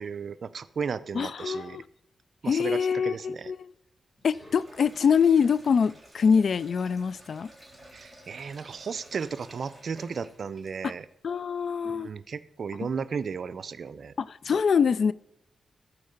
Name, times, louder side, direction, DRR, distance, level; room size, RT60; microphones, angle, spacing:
voice 1, 0.0-1.8 2.4-3.5 7.9-11.1 11.8-14.1, right 6 dB, 65° right, 0.5 m, -35 dB
voice 2, 1.1-1.8 2.5-3.7 4.2-7.5 11.2-12.1 14.2-15.1, left 6 dB, 65° left, 0.3 m, -24 dB
Sink (filling or washing), 4.2-11.0, right 1 dB, 5° left, 3.6 m, -52 dB
14.0 x 4.6 x 6.5 m
cardioid pair, 70°, 0 cm